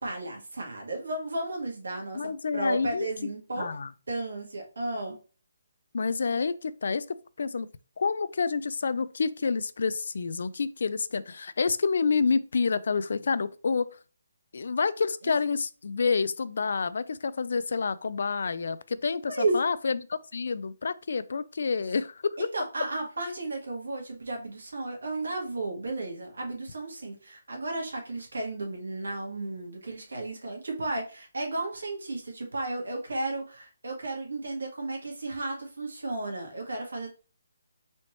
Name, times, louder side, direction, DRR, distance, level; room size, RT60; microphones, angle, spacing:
voice 1, 0.0-3.7 4.1-5.2 15.2-15.3 19.3-19.5 22.4-37.1, right 2 dB, 90° right, 1.6 m, -33 dB
voice 2, 2.1-3.1 3.5-3.9 5.9-7.7 8.0-14.0 14.5-22.5, left 5 dB, 55° left, 0.3 m, -28 dB
4.1 x 3.1 x 3.1 m
hypercardioid pair, 175°, 0 cm